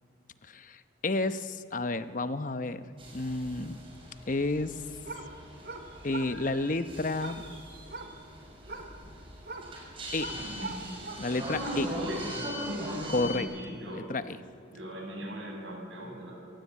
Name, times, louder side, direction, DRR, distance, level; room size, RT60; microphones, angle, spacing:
voice 1, 0.5-2.8 3.1-3.8 4.3-4.7 6.0-7.4 10.1-10.3 11.2-11.9 13.1-13.5 13.8-14.4, left 2 dB, 45° left, 11 dB, 0.9 m, -31 dB
sound 1, 3.0-13.4, equal, 30° right, 6.2 m, -40 dB
sound 2, 4.7-12.0, right 3 dB, 55° right, 3.2 m, -44 dB
voice 2, 10.3-10.9 11.8-14.1 14.7-16.3, equal, 85° right, -1 dB, 6.8 m, -41 dB
26.0 x 18.5 x 8.5 m, 2.4 s
head